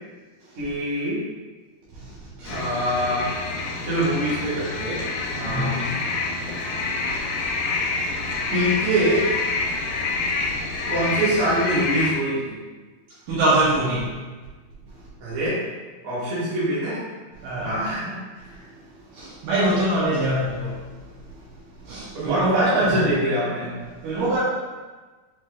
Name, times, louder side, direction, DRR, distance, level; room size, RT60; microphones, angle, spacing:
voice 1, 0.6-1.2 2.5-3.3 3.8-5.1 5.3-5.9 8.5-9.3 10.9-12.6 15.2-15.6 16.0-17.0 17.6-18.1 22.1-23.7, right 1 dB, 60° right, -9 dB, 2.5 m, -24 dB
voice 2, 1.9-2.6 5.4-5.7 13.3-14.1 17.4-17.8 19.1-20.9 21.8-23.1 24.0-24.4, right 1 dB, 80° right, -9 dB, 2.4 m, -24 dB
sound 1, 2.5-12.1, left 3 dB, 85° left, 2.3 m, -27 dB
6.1 x 3.0 x 2.2 m, 1.3 s
omnidirectional pair, 3.9 m